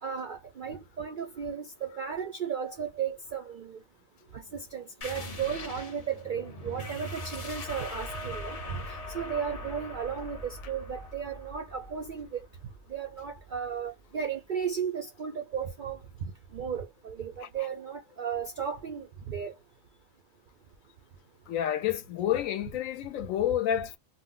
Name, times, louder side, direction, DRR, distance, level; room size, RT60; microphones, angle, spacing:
voice 1, 0.0-3.8 4.3-8.9 9.1-12.4 12.9-19.6, right 7 dB, 70° right, 0.4 m, -35 dB
sound 1, 5.0-14.2, left 1 dB, 40° left, 0.5 m, -41 dB
voice 2, 21.5-24.0, left 11 dB, 75° left, 0.9 m, -29 dB
2.4 x 2.0 x 3.6 m
omnidirectional pair, 1.5 m